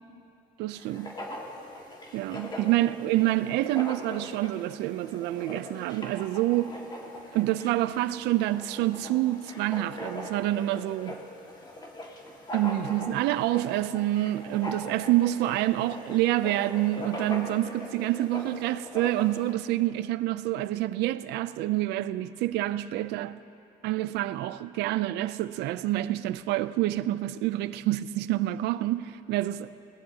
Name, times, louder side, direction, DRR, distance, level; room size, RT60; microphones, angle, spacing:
voice 1, 0.6-1.1 2.1-6.8 7.3-11.1 12.5-23.4 23.8-29.7, right 15 dB, 85° right, 0.5 m, -27 dB
Writing, 0.8-19.5, left 1 dB, 25° left, 1.9 m, -41 dB
21.5 x 18.5 x 2.8 m
cardioid pair, 110°, 17 cm